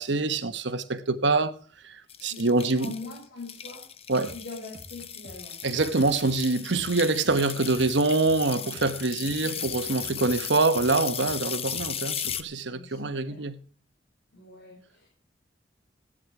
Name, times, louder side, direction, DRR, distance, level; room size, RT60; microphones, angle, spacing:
voice 1, 0.0-1.6 1.8-1.9 2.2-2.9 4.1-4.3 5.6-13.6, right 3 dB, 75° right, 1.2 m, -25 dB
sound 1, 2.1-12.4, left 9 dB, 30° left, 0.8 m, -36 dB
voice 2, 2.3-5.6 12.7-13.5 14.3-15.1, left 3 dB, 65° left, 6.7 m, -43 dB
sound 2, 4.1-12.5, right 1 dB, 50° right, 1.9 m, -48 dB
16.5 x 11.5 x 4.9 m
head